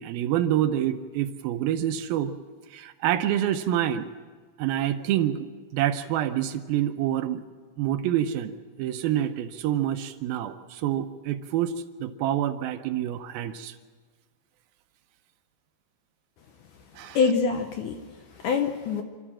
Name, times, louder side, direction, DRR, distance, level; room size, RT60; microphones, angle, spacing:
voice 1, 0.0-2.3 2.7-4.1 4.6-5.5 5.7-7.4 7.8-11.7 12.0-13.8 17.0-17.2, right 11 dB, 80° right, 9 dB, 2.4 m, -27 dB
voice 2, 17.0-19.0, left 5 dB, 70° left, 6 dB, 2.0 m, -26 dB
27.0 x 13.5 x 7.5 m, 1.5 s
omnidirectional pair, 4.5 m